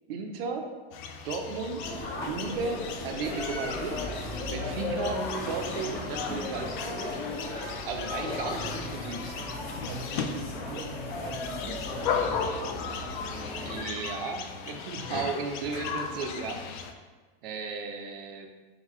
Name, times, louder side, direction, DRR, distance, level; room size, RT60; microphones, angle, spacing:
voice 1, 0.1-0.7 1.2-4.1 4.5-7.0 7.9-9.4 13.6-16.6 17.4-18.5, right 4 dB, 70° right, 4 dB, 0.7 m, -35 dB
sound 1, 0.9-16.9, left 6 dB, 55° left, 0.5 m, -37 dB
sound 2, 1.8-13.8, left 1 dB, 30° left, 1.1 m, -36 dB
voice 2, 9.9-12.8 15.0-15.1, right 3 dB, 40° right, 2 dB, 0.4 m, -42 dB
4.0 x 3.6 x 3.0 m, 1.3 s
supercardioid pair, 145°, 30 cm